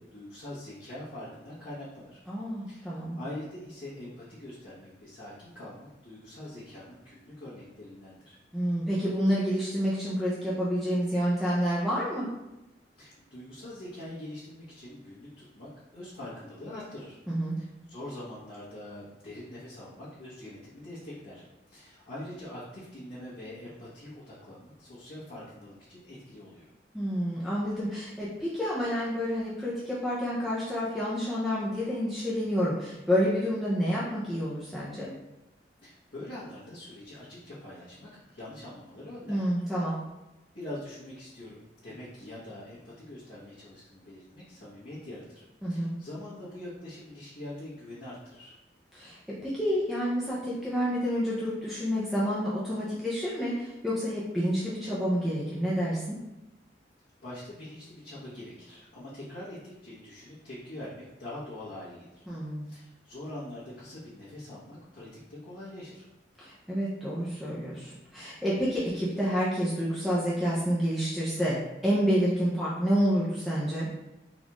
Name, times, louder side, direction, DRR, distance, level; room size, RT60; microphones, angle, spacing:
voice 1, 0.0-2.2 2.7-8.4 13.0-15.7 15.9-17.2 17.6-26.7 35.8-39.8 40.5-48.5 57.2-62.2 62.7-66.1, left 1 dB, 75° left, -11 dB, 1.1 m, -44 dB
voice 2, 2.3-3.2 8.5-12.3 17.3-17.6 26.9-35.1 39.3-39.9 45.6-45.9 48.9-49.2 49.4-56.2 62.3-62.7 66.4-71.6 71.8-73.9, equal, ahead, -8 dB, 0.5 m, -29 dB
4.0 x 2.4 x 3.0 m, 0.97 s
head